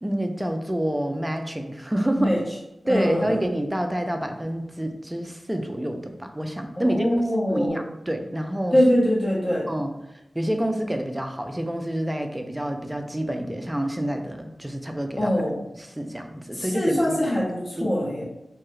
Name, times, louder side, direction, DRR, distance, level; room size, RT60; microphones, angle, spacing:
voice 1, 0.0-2.3 2.9-7.2 7.5-8.8 9.7-10.0 10.3-15.3 15.7-17.2 17.8-18.0, right 1 dB, 10° right, 5 dB, 0.3 m, -28 dB
voice 2, 2.9-3.2 6.7-7.8 8.7-9.7 15.2-15.6 16.7-18.2, equal, 30° left, -4 dB, 0.8 m, -22 dB
2.7 x 2.3 x 3.1 m, 0.93 s
wide cardioid pair, 120°, 0 cm